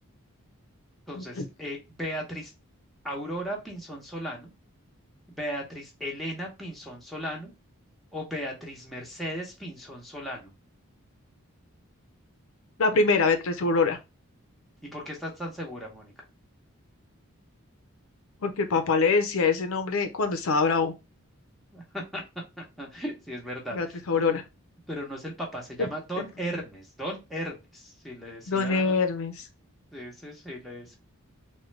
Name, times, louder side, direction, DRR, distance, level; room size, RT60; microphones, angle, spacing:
voice 1, 1.1-2.5 3.0-4.5 5.3-7.5 8.1-10.5 14.8-16.1 21.7-22.2 22.6-24.3 24.9-29.0 29.9-31.0, equal, ahead, 0.8 m, -36 dB
voice 2, 12.8-14.0 18.4-20.9 23.7-24.4 28.5-29.4, left 4 dB, 65° left, 0.5 m, -24 dB
3.6 x 2.2 x 3.1 m
head